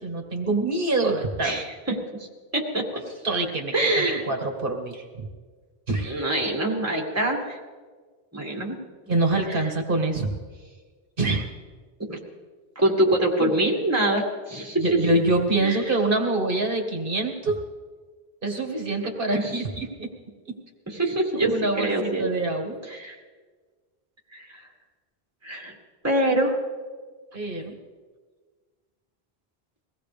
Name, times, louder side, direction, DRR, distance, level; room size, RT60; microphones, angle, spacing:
voice 1, 0.0-1.6 3.0-5.3 5.9-6.3 9.1-10.3 11.2-11.5 13.4-13.5 14.8-17.5 18.4-20.1 21.4-22.8 27.3-27.8, right 2 dB, 55° right, 2 dB, 2.0 m, -25 dB
voice 2, 1.4-1.9 2.5-2.9 3.7-4.3 6.0-7.6 8.3-8.8 12.1-12.2 12.8-14.9 15.6-15.8 19.3-19.6 20.9-22.3 22.9-23.1 24.3-24.6 25.4-25.7 26.0-26.6, right 1 dB, 15° right, -1 dB, 2.1 m, -24 dB
23.0 x 17.5 x 3.4 m, 1.5 s
omnidirectional pair, 1.1 m